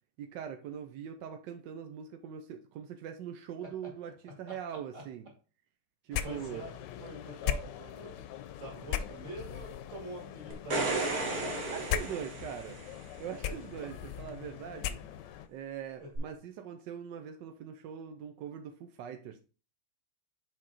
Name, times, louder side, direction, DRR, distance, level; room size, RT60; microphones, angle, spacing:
voice 1, 0.2-5.3 6.0-6.7 11.7-12.8 13.2-15.0 15.5-19.4, right 8 dB, 85° right, 1.3 m, -42 dB
voice 2, 4.2-4.6 4.9-5.0 6.2-6.7 7.0-8.2 8.5-11.3 13.8-13.9 16.0-16.1, right 2 dB, 45° right, 2.5 m, -45 dB
sound 1, 6.1-15.5, left 10 dB, 85° left, 1.2 m, -39 dB
sound 2, 10.5-13.1 16.1-16.2, right 3 dB, 60° right, 1.7 m, -34 dB
6.3 x 4.2 x 3.9 m
omnidirectional pair, 1.9 m